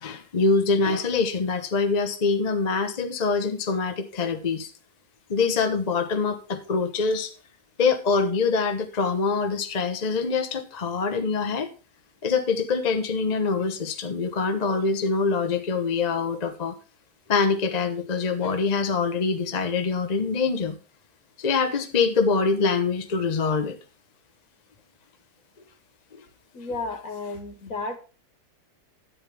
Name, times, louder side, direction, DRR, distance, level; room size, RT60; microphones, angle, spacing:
voice 1, 0.0-4.7 5.3-7.3 7.8-11.7 12.2-16.8 17.3-20.8 21.4-23.8 26.1-26.2, left 4 dB, 35° left, 6 dB, 0.8 m, -24 dB
voice 2, 26.5-28.0, left 3 dB, 60° left, 6 dB, 1.7 m, -32 dB
10.0 x 8.7 x 3.4 m, 0.33 s
omnidirectional pair, 1.7 m